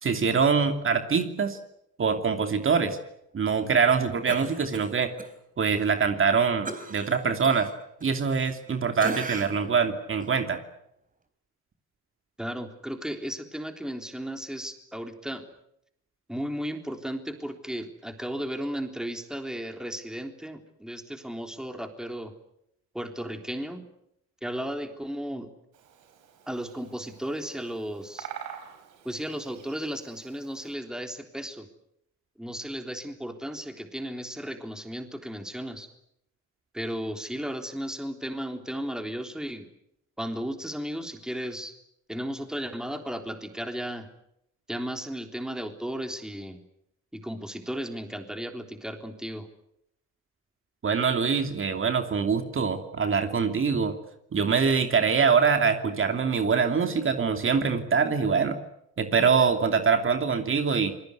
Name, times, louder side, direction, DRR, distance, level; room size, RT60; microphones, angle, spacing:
voice 1, 0.0-1.6 2.0-3.0 3.3-5.1 5.6-7.7 8.0-10.6 50.8-53.9 54.3-58.6 59.0-60.9, right 5 dB, 45° right, 6 dB, 2.8 m, -24 dB
Cough, 4.3-5.3 5.7-5.8 6.6-8.7 9.0-9.7 10.2-10.3, right 3 dB, 25° right, 3.9 m, -38 dB
voice 2, 12.4-15.4 16.3-22.3 22.9-23.9 24.4-25.5 26.5-28.3 29.1-31.7 32.4-35.9 36.7-39.7 40.2-41.7 42.1-44.1 44.7-46.6 47.1-49.5, equal, ahead, 6 dB, 3.5 m, -35 dB
Bird vocalization bird call bird song, 25.7-30.7, right 9 dB, 85° right, 5.1 m, -46 dB
27.5 x 21.0 x 8.2 m, 0.76 s
cardioid pair, 90°, 30 cm